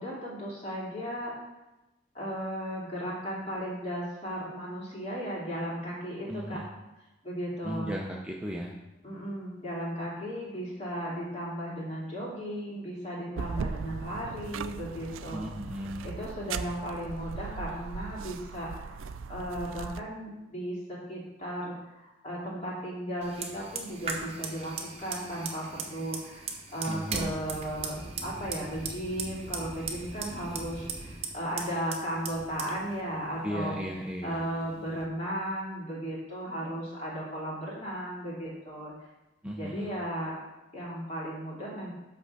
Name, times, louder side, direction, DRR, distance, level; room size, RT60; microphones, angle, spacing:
voice 1, 0.0-1.3 2.1-6.6 7.2-7.9 9.0-15.5 16.0-33.8 34.2-38.9 39.6-40.4 40.7-41.9, equal, 35° left, -6 dB, 2.6 m, -35 dB
voice 2, 6.3-6.7 7.6-8.8 15.3-16.1 26.9-27.3 33.4-34.4 39.4-39.9, equal, 5° right, -2 dB, 0.6 m, -36 dB
sound 1, 13.4-20.0, right 5 dB, 85° right, 0.4 m, -38 dB
Fire, 23.2-35.0, right 4 dB, 30° right, 0.9 m, -39 dB
5.9 x 5.2 x 6.5 m, 1.0 s
head